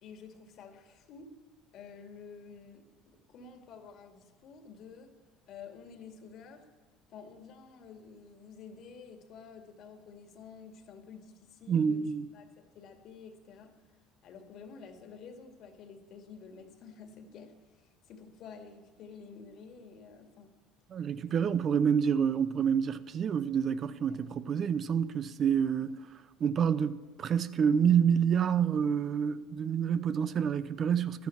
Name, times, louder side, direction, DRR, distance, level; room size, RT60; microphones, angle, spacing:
voice 1, 0.0-1.3 1.7-5.1 5.5-6.7 7.1-13.8 14.2-20.5 24.1-24.2 25.8-25.9, left 5 dB, 60° left, 2.2 m, -50 dB
voice 2, 11.7-12.2 20.9-25.9 26.4-31.3, right 7 dB, 45° right, 0.7 m, -28 dB
12.0 x 10.5 x 7.2 m
supercardioid pair, 90°, 0 cm